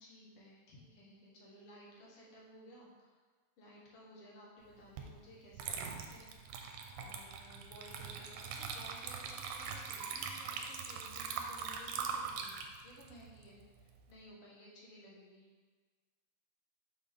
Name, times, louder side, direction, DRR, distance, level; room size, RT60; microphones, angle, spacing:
voice 1, 0.0-3.2 3.6-15.5, equal, 60° left, -4 dB, 1.8 m, -57 dB
Water / Liquid, 5.0-5.1 5.5-14.1, right 6 dB, 90° right, 2.1 m, -42 dB
6.2 x 5.6 x 3.4 m, 1.5 s
omnidirectional pair, 3.5 m